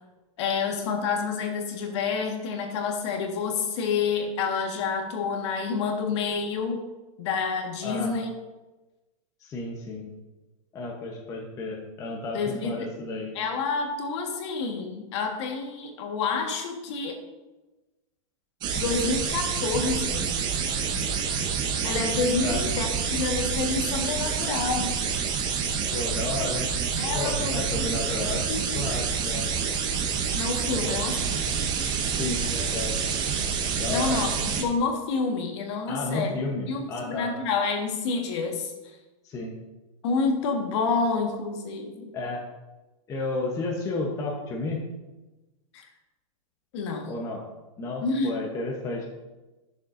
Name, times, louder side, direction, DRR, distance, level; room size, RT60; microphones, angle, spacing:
voice 1, 0.4-6.8 7.2-8.3 12.3-12.9 13.3-17.2 18.7-20.3 21.8-24.9 27.0-28.0 28.5-28.9 30.3-31.4 33.9-36.3 36.7-38.7 40.0-42.1 45.7-45.8 46.7-47.1 48.0-48.3, left 4 dB, 55° left, 3 dB, 1.5 m, -28 dB
voice 2, 7.8-8.1 9.4-10.1 10.7-13.4 22.4-22.6 25.9-26.7 27.1-28.4 28.7-29.5 30.7-31.0 32.1-33.0 33.8-34.2 35.9-37.3 39.2-39.5 42.1-42.4 43.1-44.8 47.1-47.4 47.8-49.0, left 3 dB, 20° left, -1 dB, 0.9 m, -32 dB
sound 1, 18.6-34.6, right 6 dB, 25° right, 0.8 m, -28 dB
10.5 x 7.0 x 2.6 m, 1.1 s
supercardioid pair, 160°, 18 cm